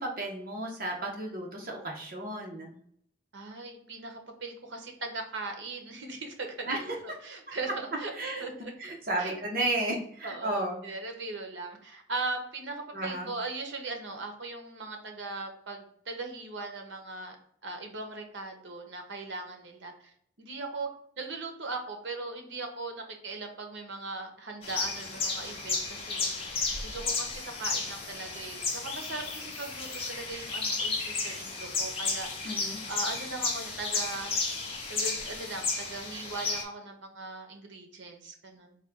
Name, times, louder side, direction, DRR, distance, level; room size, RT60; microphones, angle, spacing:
voice 1, 0.0-2.8 6.7-6.8 8.1-8.5 8.8-10.8 12.9-13.3 32.4-32.8, right 1 dB, 50° right, -1 dB, 1.1 m, -33 dB
voice 2, 3.3-8.1 8.4-8.7 9.2-9.3 10.2-17.4 17.6-20.9 21.2-26.3 26.8-32.3 32.9-34.4 34.9-38.8, right 3 dB, 80° right, 4 dB, 0.9 m, -39 dB
sound 1, 24.6-36.6, left 4 dB, 30° left, 0.7 m, -33 dB
4.0 x 2.3 x 3.7 m, 0.67 s
head